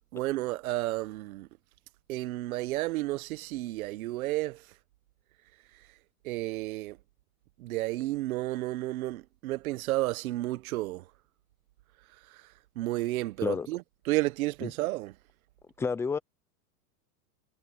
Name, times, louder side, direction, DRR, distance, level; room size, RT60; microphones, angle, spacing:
voice 1, 0.1-1.5 2.1-4.7 6.2-7.0 7.6-11.0 12.3-12.4 12.7-15.1, right 17 dB, 70° right, 1.4 m, -32 dB
voice 2, 15.8-16.2, left 5 dB, 5° left, 0.4 m, -29 dB
supercardioid pair, 130°, 44 cm